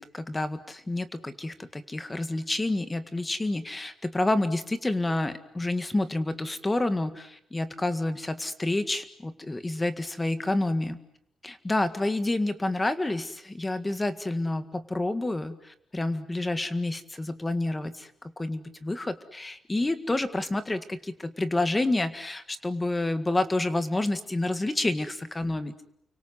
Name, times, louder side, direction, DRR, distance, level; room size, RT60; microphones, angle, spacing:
voice 1, 0.0-11.0 11.4-18.1 18.4-25.7, left 2 dB, 15° left, 11 dB, 1.8 m, -29 dB
30.0 x 24.5 x 8.1 m, 0.73 s
cardioid pair, 150°, 0 cm